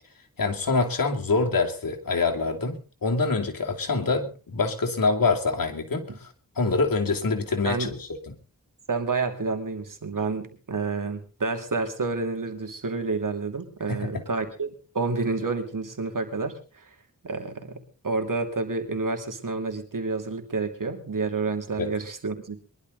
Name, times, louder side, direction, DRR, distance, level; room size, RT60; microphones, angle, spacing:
voice 1, 0.4-8.1 13.9-14.2 21.8-21.9, left 3 dB, 85° left, 3 dB, 2.8 m, -25 dB
voice 2, 8.9-16.9 17.2-22.6, right 4 dB, 70° right, 6 dB, 2.8 m, -29 dB
22.5 x 12.0 x 4.0 m, 0.35 s
cardioid pair, 45°, 34 cm